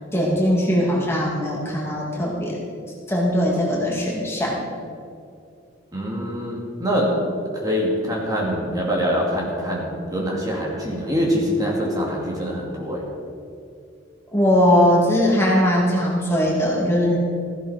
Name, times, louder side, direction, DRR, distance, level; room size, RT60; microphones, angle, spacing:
voice 1, 0.1-2.6 3.1-4.7 14.3-17.2, equal, 15° left, -4 dB, 2.6 m, -20 dB
voice 2, 5.9-7.2 7.5-13.1, equal, 20° right, -3 dB, 2.6 m, -24 dB
16.0 x 15.5 x 4.4 m, 2.4 s
head